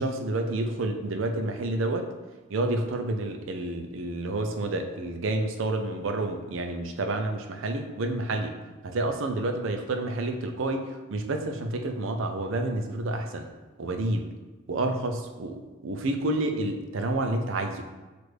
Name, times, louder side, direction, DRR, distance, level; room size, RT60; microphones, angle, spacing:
voice 1, 0.0-2.1 2.5-8.6 8.8-13.5 13.8-14.2 14.7-15.6 15.8-17.8, right 2 dB, 75° right, 5 dB, 0.5 m, -29 dB
6.1 x 2.5 x 3.3 m, 1.2 s
head